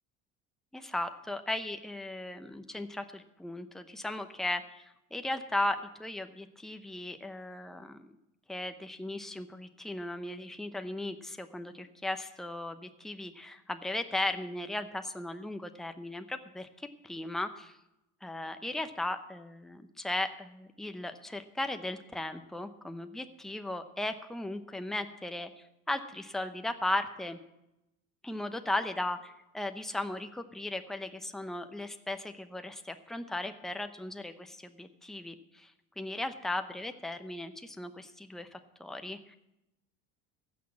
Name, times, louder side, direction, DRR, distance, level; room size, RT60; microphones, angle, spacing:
voice 1, 0.7-8.2 8.5-16.7 17.0-17.8 18.2-25.5 25.9-27.4 28.2-39.4, left 1 dB, ahead, 7 dB, 0.8 m, -37 dB
15.5 x 6.3 x 7.6 m, 0.88 s
cardioid pair, 115°, 32 cm